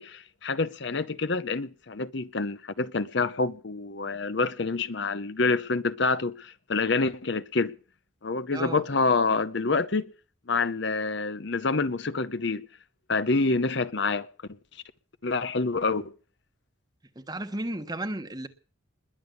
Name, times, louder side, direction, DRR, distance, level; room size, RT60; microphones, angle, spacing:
voice 1, 0.0-7.7 8.2-10.1 10.5-12.7 13.1-14.3 15.2-16.1, left 3 dB, 55° left, 0.8 m, -27 dB
voice 2, 8.5-8.8 17.2-18.5, right 1 dB, 20° right, 1.3 m, -33 dB
21.0 x 7.0 x 9.4 m
head